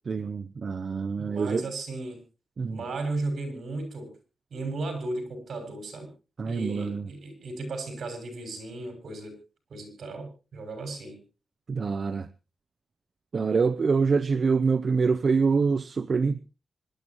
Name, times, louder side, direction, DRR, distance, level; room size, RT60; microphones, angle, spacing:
voice 1, 0.1-1.7 2.6-2.8 6.4-7.1 11.7-12.3 13.3-16.4, right 5 dB, 45° right, 0.6 m, -25 dB
voice 2, 1.1-2.2 2.7-4.1 4.5-6.1 6.4-9.3 9.7-11.2, right 2 dB, 70° right, 6.2 m, -35 dB
25.5 x 12.0 x 3.0 m
wide cardioid pair, 130°, 0 cm